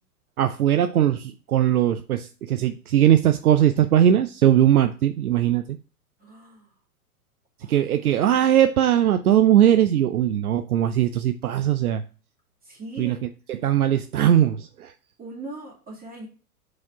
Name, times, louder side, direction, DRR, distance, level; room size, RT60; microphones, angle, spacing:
voice 1, 0.4-5.8 7.7-12.0 13.0-13.2 13.5-14.9, right 11 dB, 70° right, 0.6 m, -20 dB
voice 2, 6.2-6.7 7.6-7.8 12.6-13.2 15.2-16.3, right 2 dB, 20° right, 2.5 m, -39 dB
4.7 x 4.3 x 5.9 m
figure-of-eight pair, 105°, 45 cm